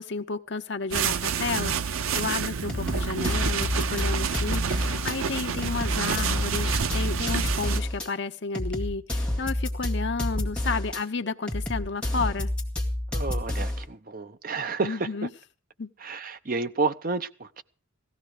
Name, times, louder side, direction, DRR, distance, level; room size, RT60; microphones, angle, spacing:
voice 1, 0.0-12.5 14.8-15.3 15.8-15.9, left 4 dB, 60° left, 0.9 m, -32 dB
sound 1, 0.9-7.8, right 7 dB, 90° right, 0.6 m, -29 dB
sound 2, 2.1-2.2 2.7-5.1 5.6-8.1 8.5-11.0 11.5-13.9, left 1 dB, 5° left, 2.0 m, -29 dB
voice 2, 13.1-15.3 16.0-17.6, right 3 dB, 45° right, 0.7 m, -30 dB
17.0 x 14.0 x 4.9 m
head